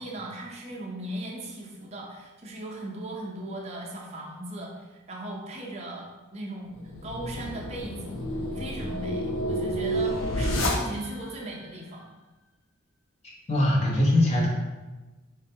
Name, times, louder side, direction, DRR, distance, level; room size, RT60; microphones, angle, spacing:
voice 1, 0.0-8.3 8.5-12.1, right 1 dB, 30° right, -2 dB, 0.5 m, -38 dB
sound 1, 6.7-11.3, equal, 80° left, 0.5 m, -29 dB
voice 2, 13.5-14.5, left 1 dB, 30° left, -3 dB, 0.7 m, -21 dB
4.3 x 2.2 x 2.7 m, 1.2 s
head